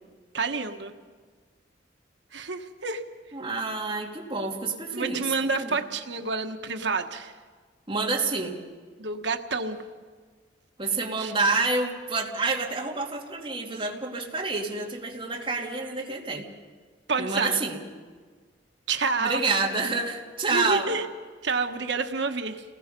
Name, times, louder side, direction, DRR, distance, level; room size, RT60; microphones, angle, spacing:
voice 1, 0.3-0.9 2.3-3.0 4.9-7.3 9.0-9.8 11.2-11.3 17.1-17.6 18.9-19.4 20.5-21.0 21.4-22.6, right 4 dB, 75° right, 6 dB, 1.4 m, -28 dB
voice 2, 3.3-5.8 7.9-8.6 10.8-16.5 17.2-17.8 19.2-21.0, right 3 dB, 30° right, -1 dB, 2.8 m, -28 dB
29.5 x 20.0 x 5.4 m, 1.5 s
head